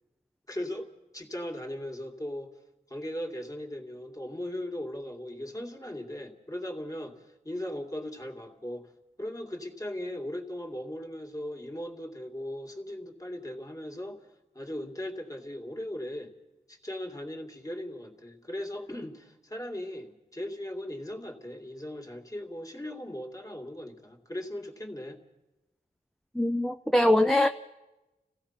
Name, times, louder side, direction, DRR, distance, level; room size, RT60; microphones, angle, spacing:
voice 1, 0.5-2.5 2.9-8.9 9.2-16.3 16.7-25.2, left 1 dB, 20° left, 1 dB, 2.4 m, -38 dB
voice 2, 26.3-27.5, left 1 dB, ahead, 6 dB, 0.6 m, -22 dB
27.5 x 16.0 x 5.8 m, 1.0 s
wide cardioid pair, 85°, 16 cm